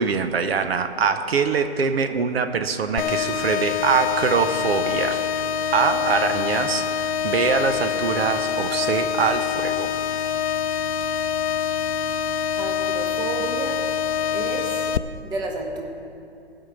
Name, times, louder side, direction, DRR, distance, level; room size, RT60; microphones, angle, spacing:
voice 1, 0.0-5.2 5.7-6.8 7.2-9.9, right 5 dB, 70° right, 9 dB, 0.8 m, -23 dB
sound 1, 3.0-15.0, left 8 dB, 85° left, 0.5 m, -25 dB
voice 2, 12.6-13.9 14.3-14.9 15.2-15.8, right 2 dB, 15° right, 2 dB, 1.0 m, -31 dB
15.5 x 5.7 x 6.9 m, 2.6 s
hypercardioid pair, 135°, 32 cm